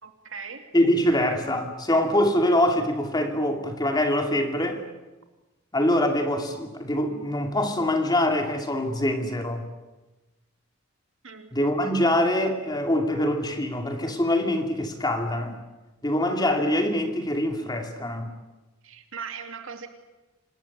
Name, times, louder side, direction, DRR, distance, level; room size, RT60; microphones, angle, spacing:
voice 1, 0.0-0.6 11.2-11.5 18.8-19.9, right 6 dB, 60° right, 6 dB, 2.8 m, -39 dB
voice 2, 0.7-4.8 5.7-9.6 11.5-15.6 16.0-18.3, left 1 dB, 20° left, 5 dB, 2.5 m, -24 dB
27.0 x 19.5 x 9.6 m, 1.1 s
head